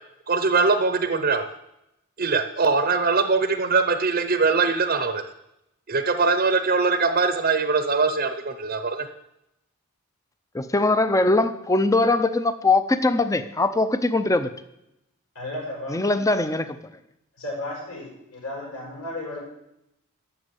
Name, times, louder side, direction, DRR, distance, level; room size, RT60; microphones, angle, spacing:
voice 1, 0.3-1.5 2.2-5.2 5.9-9.1, right 4 dB, 40° right, 0.7 m, -22 dB
voice 2, 10.5-14.5 15.9-16.8, left 2 dB, 15° left, 0.6 m, -21 dB
voice 3, 15.3-15.9 17.4-19.4, left 1 dB, 80° left, 5.9 m, -34 dB
13.0 x 6.2 x 8.1 m
head